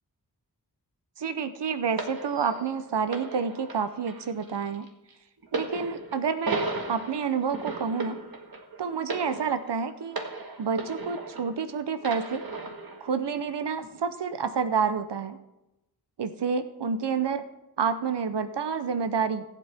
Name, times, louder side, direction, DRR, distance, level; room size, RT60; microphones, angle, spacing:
voice 1, 1.2-4.9 5.5-8.2 8.8-10.2 10.6-12.4 13.0-15.4 16.2-17.4 17.8-19.4, right 6 dB, 85° right, 11 dB, 0.7 m, -29 dB
sound 1, 2.0-11.6 12.0-13.0 13.8-14.0, right 3 dB, 60° right, 1.7 m, -36 dB
21.0 x 8.3 x 3.5 m, 0.95 s
wide cardioid pair, 45°, 40 cm